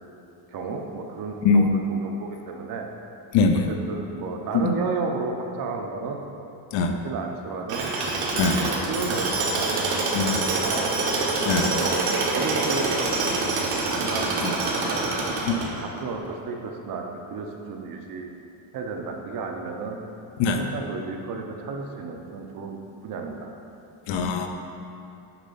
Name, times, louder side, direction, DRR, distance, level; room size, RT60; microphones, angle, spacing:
voice 1, 0.5-2.9 3.9-6.2 7.0-7.9 8.6-9.8 10.5-10.9 11.6-15.0 15.7-18.3 18.7-20.0 20.5-23.5, right 4 dB, 45° right, 2 dB, 0.6 m, -33 dB
voice 2, 3.3-3.6 4.5-4.7 6.7-7.0 8.3-8.7 10.1-10.4 11.4-11.8 14.4-14.5 15.5-15.7 20.4-20.6 24.1-24.5, left 4 dB, 65° left, 5 dB, 0.6 m, -22 dB
Tools, 7.7-16.0, right 3 dB, 80° right, 1.3 m, -26 dB
7.0 x 3.3 x 5.4 m, 2.8 s
cardioid pair, 160°, 49 cm